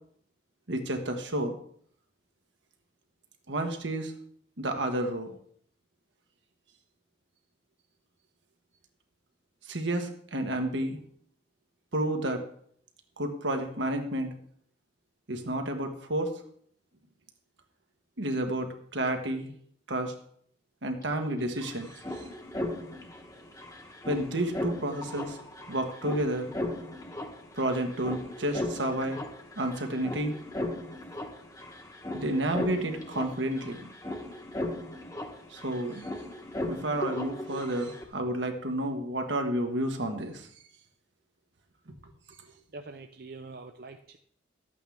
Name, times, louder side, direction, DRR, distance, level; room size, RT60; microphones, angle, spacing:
voice 1, 0.7-1.5 3.5-4.1 4.6-5.4 9.7-11.0 11.9-12.4 13.2-14.3 15.3-16.3 18.2-19.5 19.9-20.1 20.8-21.9 24.1-25.4 25.7-26.5 27.6-29.2 29.6-30.3 32.1-33.9 35.5-36.0 36.7-40.5, right 1 dB, 75° right, 5 dB, 1.4 m, -30 dB
sound 1, 21.0-21.1 21.3-38.0, left 1 dB, 20° left, 1.2 m, -38 dB
voice 2, 42.5-44.2, right 3 dB, 55° right, 5 dB, 0.5 m, -45 dB
13.0 x 8.4 x 3.5 m, 0.62 s
head